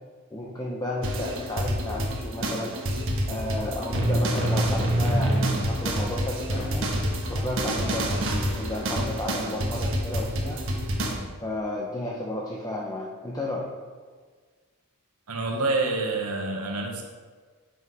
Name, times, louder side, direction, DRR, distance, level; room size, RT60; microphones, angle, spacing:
voice 1, 0.3-2.8 3.3-6.9 7.3-8.2 8.5-10.6 11.4-13.7, left 1 dB, 15° left, -2 dB, 0.7 m, -32 dB
sound 1, 1.0-11.1, right 1 dB, 60° right, 1.3 m, -27 dB
sound 2, 4.2-4.6 6.4-6.8, left 1 dB, 80° left, 1.5 m, -39 dB
voice 2, 15.3-17.0, right 2 dB, 85° right, 1 dB, 1.0 m, -27 dB
8.4 x 5.7 x 4.7 m, 1.5 s
head